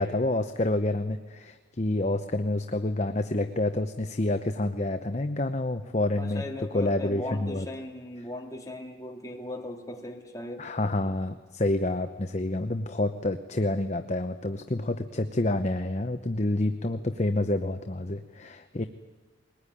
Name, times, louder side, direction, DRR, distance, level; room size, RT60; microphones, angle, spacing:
voice 1, 0.0-7.7 10.6-18.8, left 2 dB, 35° left, 8 dB, 0.9 m, -28 dB
voice 2, 6.2-10.7, left 1 dB, 15° left, 1 dB, 2.8 m, -38 dB
22.0 x 20.0 x 10.0 m, 1.4 s
head